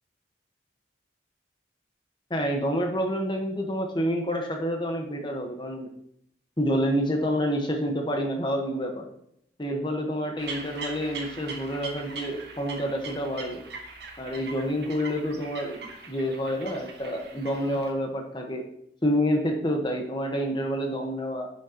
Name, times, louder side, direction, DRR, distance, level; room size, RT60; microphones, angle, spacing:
voice 1, 2.3-5.9 6.6-9.1 9.6-13.6 14.2-18.6 19.0-21.5, equal, 25° left, 3 dB, 1.3 m, -28 dB
sound 1, 10.4-17.9, right 4 dB, 70° right, 1.4 m, -41 dB
10.5 x 6.4 x 3.0 m, 0.73 s
head